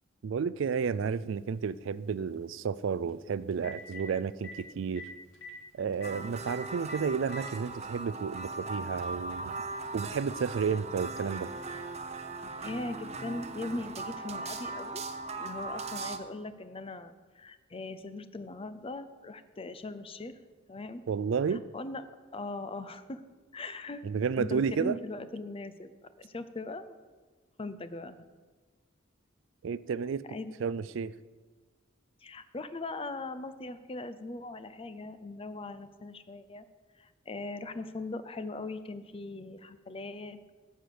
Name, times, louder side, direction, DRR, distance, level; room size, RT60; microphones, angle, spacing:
voice 1, 0.2-5.0 5.7-9.5 9.9-11.5 21.1-21.6 24.0-25.0 29.6-30.2 30.6-31.1, right 6 dB, 70° right, 17 dB, 0.4 m, -31 dB
Telephone, 0.8-0.9 3.1-3.2 3.5-4.0 4.4-4.5 5.0-5.1 5.3-5.5 6.0-6.1 6.5-6.6 6.9-7.5 8.4-8.5 10.0-10.1, left 3 dB, 85° left, 2.0 m, -44 dB
sound 1, 6.0-16.2, right 3 dB, 35° right, 0.7 m, -39 dB
voice 2, 12.4-15.0 15.4-20.3 20.7-21.0 21.5-22.1 22.3-23.2 23.5-24.0 24.4-25.9 26.2-27.0 27.6-28.2 30.3-30.5 32.2-36.6 37.0-40.5, left 2 dB, 30° left, 13 dB, 0.6 m, -40 dB
10.0 x 6.5 x 7.8 m, 1.4 s
head